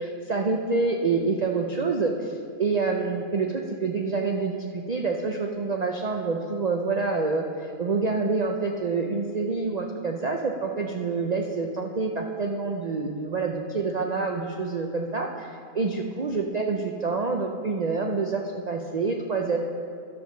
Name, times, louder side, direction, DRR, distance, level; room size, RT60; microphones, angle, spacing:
voice 1, 0.0-19.6, right 4 dB, 90° right, 2 dB, 0.3 m, -27 dB
12.0 x 5.2 x 6.4 m, 2.4 s
omnidirectional pair, 1.5 m